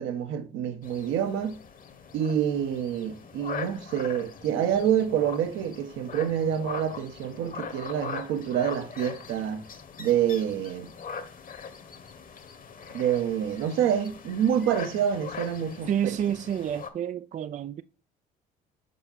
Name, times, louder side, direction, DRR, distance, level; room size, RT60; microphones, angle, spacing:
voice 1, 0.0-1.6 2.1-9.6 10.0-10.9 12.9-16.1, right 9 dB, 70° right, 1.0 m, -27 dB
sound 1, 0.8-16.9, left 6 dB, 40° left, 1.2 m, -42 dB
voice 2, 15.9-17.8, right 9 dB, 35° right, 0.4 m, -29 dB
6.8 x 4.4 x 4.2 m
hypercardioid pair, 65°, 21 cm